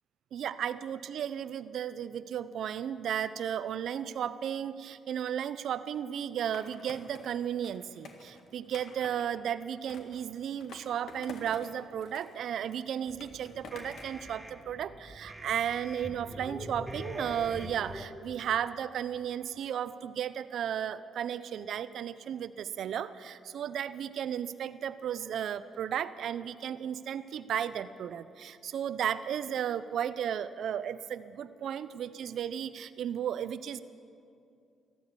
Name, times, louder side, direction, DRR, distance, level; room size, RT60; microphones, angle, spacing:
voice 1, 0.3-33.8, right 9 dB, 70° right, 13 dB, 0.5 m, -34 dB
Skateboard, 6.5-9.3 9.9-11.7 12.0-14.2, left 4 dB, 70° left, 1.7 m, -50 dB
sound 1, 13.1-18.1, equal, 5° right, 1.1 m, -43 dB
14.0 x 12.5 x 8.4 m, 2.5 s
cardioid pair, 90°, 0 cm